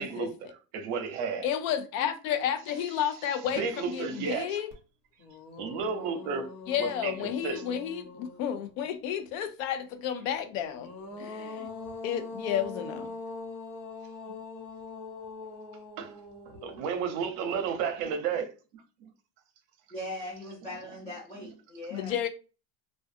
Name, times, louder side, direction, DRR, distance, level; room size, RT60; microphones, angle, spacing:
voice 1, 0.0-1.5 3.5-4.6 5.6-6.5 6.8-7.8 16.0-16.2 16.5-18.8 21.4-21.5, right 6 dB, 60° right, 0.7 m, -33 dB
voice 2, 1.4-4.7 6.7-10.9 11.2-11.7 12.0-13.1 21.9-22.3, left 9 dB, 85° left, 0.6 m, -31 dB
sound 1, 4.7-4.8 5.2-8.9 10.5-17.8, left 3 dB, 60° left, 0.9 m, -43 dB
voice 3, 19.9-22.2, left 1 dB, 20° left, 0.5 m, -40 dB
2.5 x 2.2 x 2.5 m
cardioid pair, 150°, 40 cm